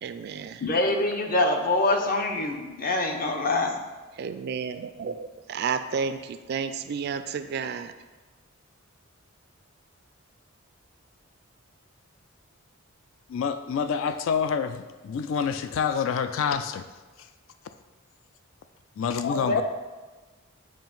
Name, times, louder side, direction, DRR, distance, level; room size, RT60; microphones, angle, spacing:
voice 1, 0.0-0.6 4.2-7.9, right 6 dB, 50° right, 10 dB, 0.3 m, -31 dB
voice 2, 0.6-3.8 19.2-19.6, left 2 dB, 45° left, 3 dB, 0.7 m, -25 dB
voice 3, 13.3-16.9 19.0-19.6, left 6 dB, 65° left, 9 dB, 0.3 m, -27 dB
7.5 x 2.5 x 5.2 m, 1.3 s
head